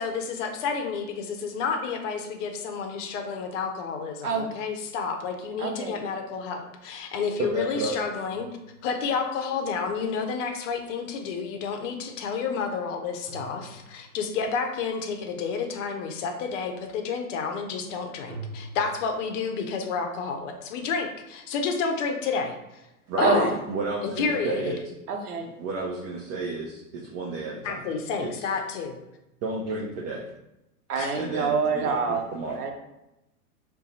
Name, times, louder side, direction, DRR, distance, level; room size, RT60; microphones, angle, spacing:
voice 1, 0.0-8.5 8.8-22.5 23.2-23.5 24.2-24.7 27.6-29.0 31.0-31.1, left 5 dB, 55° left, 5 dB, 0.7 m, -30 dB
voice 2, 5.6-6.0 23.2-23.5 25.1-25.5 30.9-32.2 32.5-32.7, right 5 dB, 85° right, 3 dB, 0.7 m, -26 dB
voice 3, 7.4-8.0 23.1-23.3 23.7-24.8 25.6-27.8 28.2-28.6 29.4-30.3 31.2-32.6, right 3 dB, 40° right, -2 dB, 0.6 m, -32 dB
sound 1, 8.2-11.5 13.3-14.4 18.3-18.9, right 2 dB, 55° right, 0.9 m, -45 dB
2.6 x 2.2 x 3.9 m, 0.92 s
hypercardioid pair, 95°, 45 cm